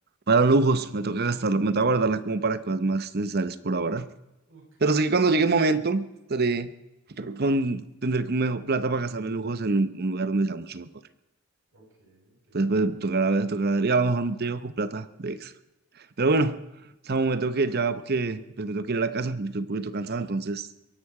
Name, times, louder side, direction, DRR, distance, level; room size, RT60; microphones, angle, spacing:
voice 1, 0.3-4.1 4.8-6.0 6.3-6.7 7.2-10.9 12.5-15.5 16.2-16.6 17.1-20.7, right 3 dB, 45° right, 0.8 m, -25 dB
voice 2, 4.5-5.0 11.7-12.7 19.8-20.3, right 2 dB, 65° right, 7.8 m, -56 dB
23.0 x 11.5 x 4.9 m
head